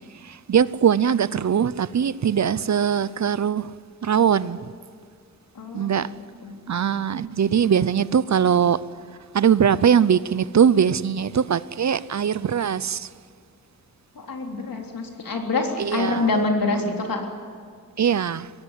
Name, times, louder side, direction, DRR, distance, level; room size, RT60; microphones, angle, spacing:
voice 1, 0.1-3.8 4.0-4.7 5.7-6.1 6.7-8.8 9.3-13.1 15.8-16.3 18.0-18.5, right 8 dB, 55° right, 0.6 m, -21 dB
voice 2, 5.6-6.1 6.4-6.6 14.2-17.2, left 3 dB, 80° left, 3.6 m, -26 dB
23.0 x 17.0 x 9.8 m
wide cardioid pair, 140°, 34 cm